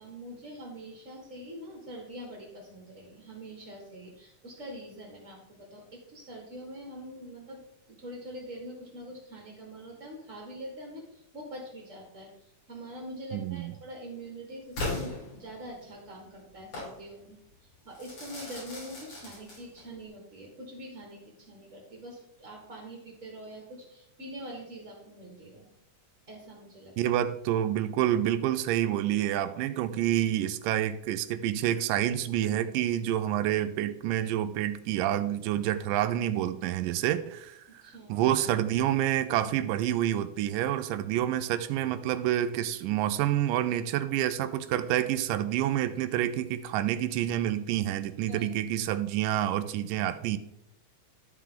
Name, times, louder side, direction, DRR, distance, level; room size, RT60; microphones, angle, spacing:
voice 1, 0.0-7.6 7.9-25.7 26.3-26.9 37.8-38.1 48.3-48.5, equal, 30° right, -2 dB, 1.5 m, -44 dB
voice 2, 13.3-13.7 27.0-37.6 38.1-50.4, right 12 dB, 90° right, 12 dB, 2.2 m, -28 dB
Crackle / Fireworks, 14.8-15.9 16.7-17.0 18.0-20.0, left 2 dB, 50° left, 4.9 m, -37 dB
13.5 x 4.6 x 3.7 m, 0.76 s
omnidirectional pair, 3.7 m